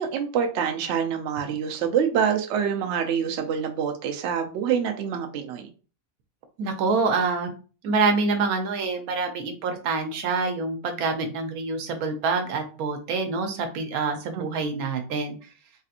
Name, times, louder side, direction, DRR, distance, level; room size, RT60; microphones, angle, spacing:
voice 1, 0.0-5.7 14.3-14.7, right 7 dB, 65° right, 5 dB, 0.7 m, -26 dB
voice 2, 6.6-7.5 7.8-15.4, right 4 dB, 85° right, 5 dB, 1.1 m, -26 dB
3.2 x 2.8 x 2.4 m, 0.36 s
omnidirectional pair, 1.5 m